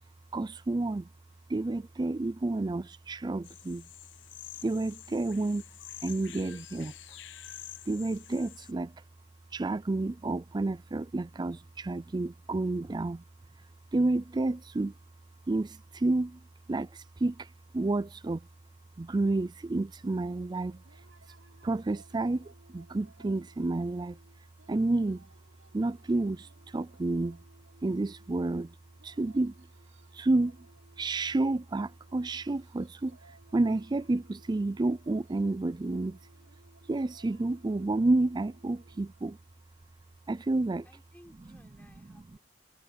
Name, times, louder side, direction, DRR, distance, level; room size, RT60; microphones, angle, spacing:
voice 1, 0.3-1.1 1.5-3.9 4.6-5.6 6.0-6.9 7.9-9.0 9.5-13.2 13.9-14.9 15.5-16.4 16.7-18.5 19.0-20.8 21.6-24.2 24.7-25.3 25.7-27.4 27.8-28.7 29.0-29.7 30.1-30.7 31.0-36.2 36.9-39.4 40.3-40.9 41.5-41.6 42.0-42.4, right 2 dB, 25° right, 0.4 m, -30 dB
sound 1, 3.4-8.7, left 12 dB, 70° left, 0.9 m, -48 dB
sound 2, 20.7-40.2, right 2 dB, 90° right, 7.9 m, -62 dB
voice 2, 40.8-42.4, equal, 10° left, 5.7 m, -59 dB
head